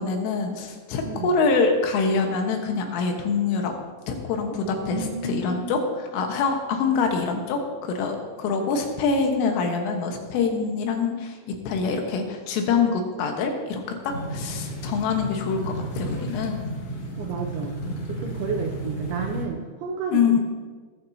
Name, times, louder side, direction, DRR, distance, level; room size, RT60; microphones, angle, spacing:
voice 1, 0.0-3.7 4.1-16.6 20.1-20.4, left 5 dB, 85° left, 3 dB, 3.8 m, -25 dB
voice 2, 4.5-5.8 17.2-17.8 18.1-20.4, right 4 dB, 85° right, 1 dB, 2.2 m, -31 dB
sound 1, 14.1-19.4, right 1 dB, 65° left, 1.5 m, -32 dB
20.0 x 10.5 x 2.7 m, 1.4 s
omnidirectional pair, 5.6 m